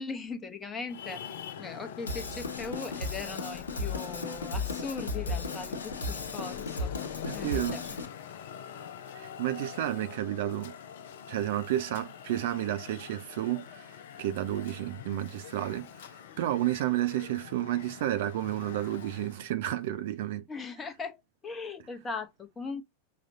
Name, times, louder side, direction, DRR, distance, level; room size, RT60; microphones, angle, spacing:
voice 1, 0.0-6.9 7.3-8.0 20.5-22.8, left 4 dB, 20° left, 0.8 m, -39 dB
Traffic noise roadway noise, 0.9-19.5, left 9 dB, 55° left, 0.5 m, -44 dB
Drum kit / Drum, 2.1-8.1, left 2 dB, 75° left, 1.2 m, -35 dB
voice 2, 7.3-7.8 9.1-10.7 11.3-13.9 14.2-20.4, right 13 dB, 55° right, 0.5 m, -31 dB
6.0 x 2.2 x 2.6 m
figure-of-eight pair, 90°, 0 cm